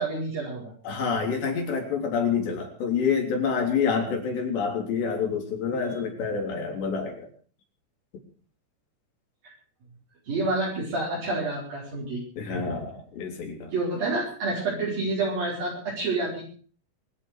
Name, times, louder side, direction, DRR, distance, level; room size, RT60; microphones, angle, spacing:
voice 1, 0.0-0.7 5.9-6.0 9.4-9.5 10.3-12.8 13.7-16.4, right 2 dB, 55° right, -5 dB, 6.7 m, -29 dB
voice 2, 0.9-7.3 12.4-13.7, left 6 dB, 75° left, 2 dB, 5.8 m, -27 dB
25.0 x 8.5 x 6.6 m, 0.43 s
omnidirectional pair, 5.0 m